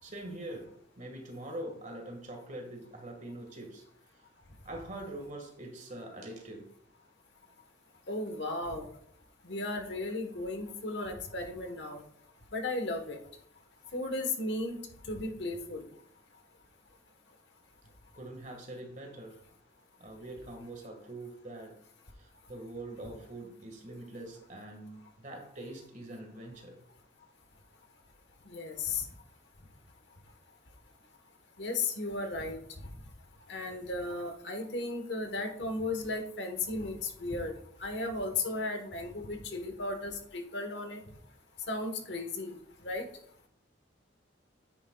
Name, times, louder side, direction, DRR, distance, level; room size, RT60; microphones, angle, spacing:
voice 1, 0.0-3.9 4.6-6.7 18.1-19.4 20.0-21.8 22.1-26.8, right 1 dB, 40° right, 1.7 m, -44 dB
voice 2, 8.1-8.9 9.4-12.0 12.5-13.2 13.9-14.8 15.1-15.8 28.5-29.1 31.6-32.6 33.5-37.5 37.8-41.0 41.7-42.5 42.8-43.1, left 2 dB, 65° left, 1.3 m, -35 dB
9.7 x 9.0 x 2.3 m
head